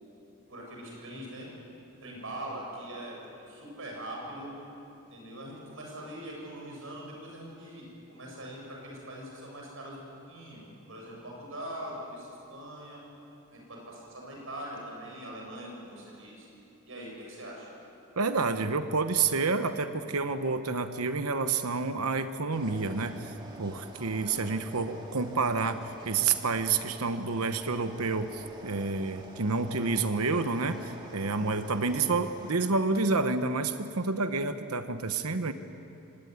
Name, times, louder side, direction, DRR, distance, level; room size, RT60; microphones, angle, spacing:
voice 1, 0.5-1.5 2.0-4.5 5.1-13.0 13.5-16.5 16.9-17.7, right 1 dB, 65° right, -2 dB, 7.7 m, -42 dB
voice 2, 18.2-23.3 23.6-35.5, right 4 dB, 85° right, 9 dB, 1.0 m, -29 dB
sound 1, 22.5-32.6, right 1 dB, 20° right, 2.3 m, -47 dB
26.0 x 18.5 x 9.6 m, 2.9 s
head